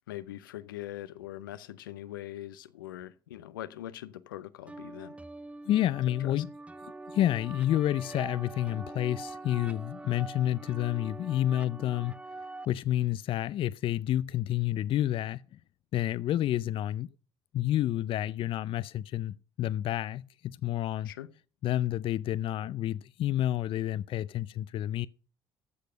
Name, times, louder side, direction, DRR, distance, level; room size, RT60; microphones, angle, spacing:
voice 1, 0.1-5.2 6.2-6.4 21.0-21.3, left 13 dB, 85° left, 0.7 m, -42 dB
sound 1, 4.7-12.6, right 2 dB, 10° right, 0.7 m, -44 dB
voice 2, 5.7-6.5 7.1-12.2 12.7-15.4 15.9-17.1 17.5-21.1 21.6-25.1, left 13 dB, 55° left, 0.4 m, -29 dB
14.0 x 6.6 x 5.0 m
hypercardioid pair, 60°, 11 cm